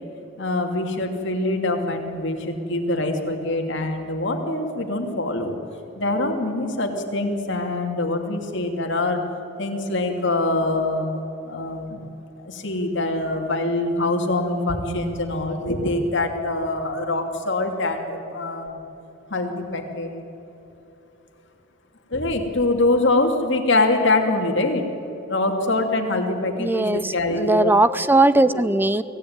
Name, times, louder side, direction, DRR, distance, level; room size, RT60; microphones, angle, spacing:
voice 1, 0.4-5.5 5.9-9.2 9.6-11.1 11.5-12.0 12.4-18.8 19.3-20.1 22.1-24.9 25.3-27.7 28.5-28.6, left 2 dB, 65° left, 3 dB, 2.7 m, -24 dB
voice 2, 26.6-29.0, right 2 dB, 10° right, 15 dB, 0.6 m, -19 dB
24.0 x 16.5 x 9.6 m, 2.9 s
head